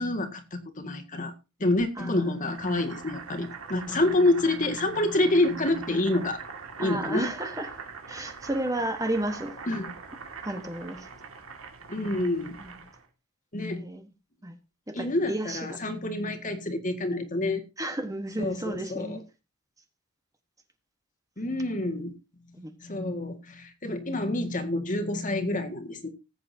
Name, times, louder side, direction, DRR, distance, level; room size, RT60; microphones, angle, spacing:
voice 1, 0.0-1.3 1.6-6.4 6.8-7.3 9.7-9.9 11.9-12.6 13.5-13.8 14.9-17.6 18.4-19.2 21.4-22.1 22.8-26.1, left 2 dB, 40° left, 6 dB, 1.9 m, -27 dB
Boiling, 2.4-13.1, right 5 dB, 80° right, 2.1 m, -43 dB
voice 2, 6.8-7.8 8.1-9.6 10.4-11.1 12.6-12.8 13.8-14.1 14.4-14.5 14.9-15.8 17.8-19.2 22.5-22.7, right 1 dB, 15° right, 6 dB, 1.2 m, -32 dB
19.0 x 8.5 x 2.8 m, 0.28 s
head